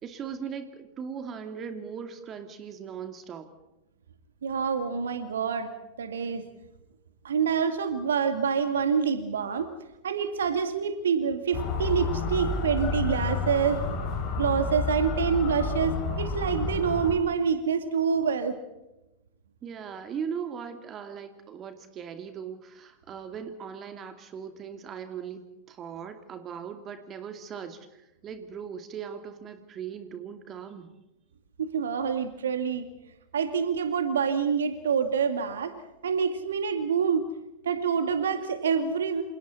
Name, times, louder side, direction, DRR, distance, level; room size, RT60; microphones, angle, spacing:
voice 1, 0.0-3.5 19.6-25.4 25.7-30.9, right 7 dB, 30° right, 8 dB, 2.5 m, -39 dB
voice 2, 4.4-5.7 6.0-6.4 7.2-9.7 10.0-13.8 14.4-18.6 31.6-32.9 33.3-35.8 36.0-37.3 37.6-39.2, right 6 dB, 65° right, 8 dB, 2.3 m, -26 dB
Motor vehicle (road) / Siren, 11.5-17.2, left 4 dB, 40° left, 6.5 m, -30 dB
28.5 x 28.0 x 4.3 m, 0.92 s
figure-of-eight pair, 90°, 0 cm